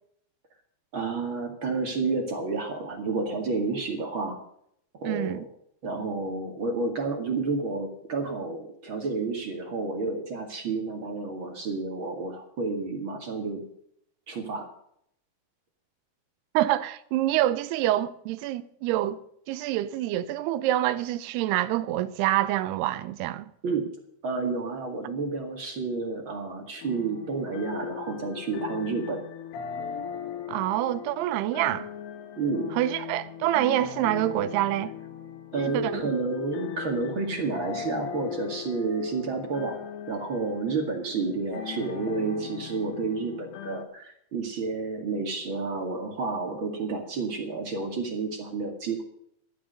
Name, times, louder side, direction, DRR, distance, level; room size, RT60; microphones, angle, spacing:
voice 1, 0.9-4.4 4.9-5.4 5.8-13.6 14.3-14.7 23.6-23.9 24.2-29.2 32.4-32.8 35.5-49.0, right 4 dB, 40° right, 2.0 m, -30 dB
voice 2, 5.1-5.5 16.5-19.2 19.5-23.5 30.5-31.9 32.7-34.9 35.6-36.0, right 14 dB, 80° right, 2.7 m, -26 dB
sound 1, 26.8-43.9, left 8 dB, 75° left, 3.4 m, -39 dB
13.0 x 10.5 x 6.7 m
omnidirectional pair, 4.9 m